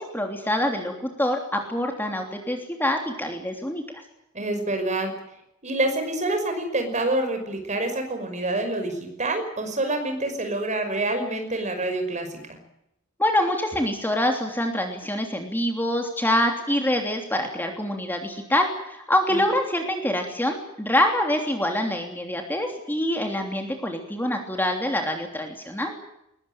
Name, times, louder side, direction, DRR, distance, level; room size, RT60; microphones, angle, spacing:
voice 1, 0.0-4.0 13.2-25.9, left 1 dB, 10° left, 3 dB, 3.1 m, -25 dB
voice 2, 4.3-5.1 5.6-12.6 19.3-19.4, right 2 dB, 35° right, 6 dB, 5.7 m, -27 dB
22.0 x 21.0 x 8.9 m, 0.82 s
head